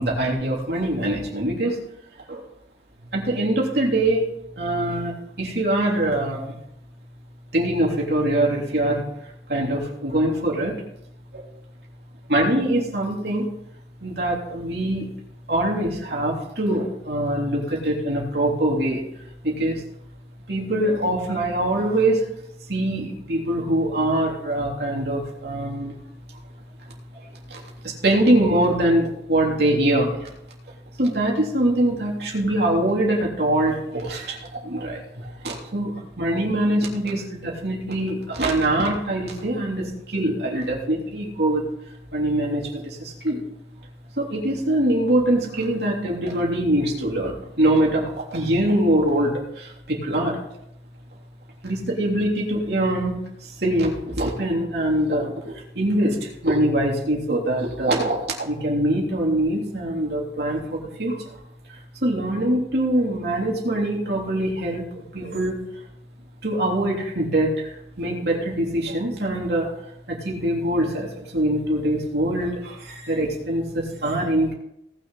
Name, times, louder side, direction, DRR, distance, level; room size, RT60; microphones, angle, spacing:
voice 1, 0.0-1.8 2.3-2.4 3.1-4.3 4.6-6.5 7.5-9.0 9.5-10.8 11.3-11.4 12.3-13.5 14.0-15.1 15.5-19.0 19.4-19.8 20.5-22.2 22.7-25.9 27.5-30.3 31.0-41.6 42.1-43.4 44.2-50.4 51.6-53.1 53.6-61.2 62.0-64.8 65.1-65.5 66.4-69.7 70.1-74.5, right 1 dB, 65° right, -2 dB, 3.3 m, -23 dB
18.5 x 6.7 x 4.2 m, 0.79 s
head